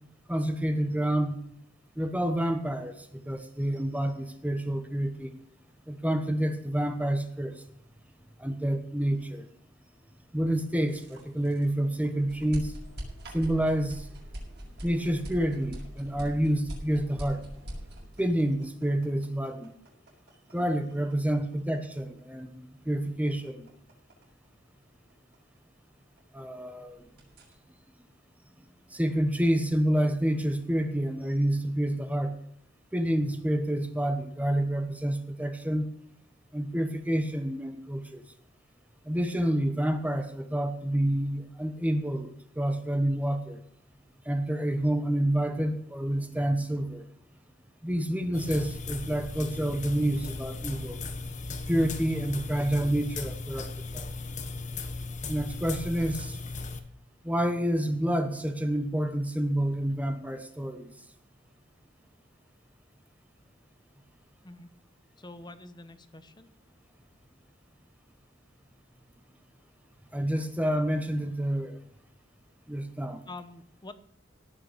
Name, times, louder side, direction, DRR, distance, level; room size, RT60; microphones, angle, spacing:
voice 1, 0.3-1.3 2.0-5.4 5.9-7.6 8.4-9.5 10.3-12.7 13.3-14.1 14.8-17.4 18.2-19.7 20.5-23.7 26.3-27.1 28.9-32.4 32.9-35.9 36.5-38.2 39.0-43.6 44.2-47.1 47.8-51.0 51.7-54.1 55.3-56.4 57.2-60.9 70.1-71.8 72.7-73.2, right 1 dB, 10° right, 7 dB, 1.1 m, -28 dB
sound 1, 10.8-26.6 26.9-27.6, equal, 60° right, 6.6 m, -43 dB
sound 2, 48.3-56.8, left 3 dB, 40° left, 1.2 m, -37 dB
voice 2, 65.2-66.5 73.3-73.9, left 2 dB, 25° left, 11 dB, 1.0 m, -45 dB
17.5 x 6.7 x 6.7 m, 0.70 s
head